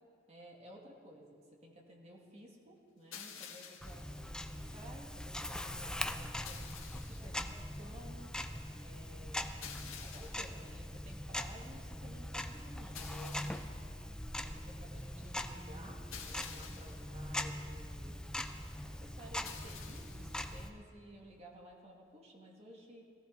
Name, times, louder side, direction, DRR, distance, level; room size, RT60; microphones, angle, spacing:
voice 1, 0.3-8.4 8.8-9.5 10.0-14.0 14.4-18.3 18.8-23.1, equal, 35° right, -2 dB, 2.3 m, -55 dB
sound 1, 3.1-4.0 6.4-7.3 9.6-10.5 12.9-13.8 16.1-17.0 19.4-20.3, left 7 dB, 90° left, 1.6 m, -49 dB
Tick-tock, 3.8-20.7, left 1 dB, 5° left, 0.5 m, -42 dB
18.5 x 15.0 x 4.1 m, 2.2 s
head